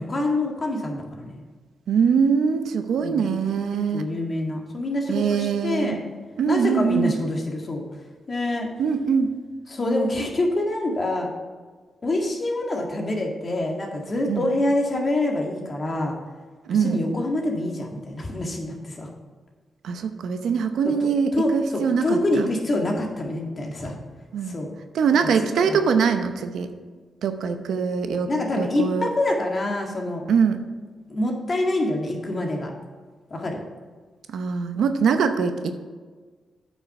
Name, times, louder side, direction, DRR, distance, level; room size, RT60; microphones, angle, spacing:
voice 1, 0.0-1.4 3.0-3.2 3.9-6.0 6.5-7.9 8.3-8.7 9.7-11.3 12.0-16.2 16.7-19.1 20.8-20.9 21.3-24.0 24.4-24.7 25.4-25.8 28.3-30.3 31.1-32.7 33.3-33.6, left 1 dB, 40° left, 0 dB, 1.8 m, -26 dB
voice 2, 1.9-4.1 5.1-6.0 6.4-7.1 8.8-9.3 14.3-14.5 16.7-17.0 19.8-22.5 24.3-24.6 24.9-26.7 27.2-28.3 28.6-29.1 30.3-30.6 34.3-35.7, right 6 dB, 80° right, 8 dB, 0.7 m, -23 dB
8.7 x 5.7 x 5.9 m, 1.4 s
cardioid pair, 80°, 0 cm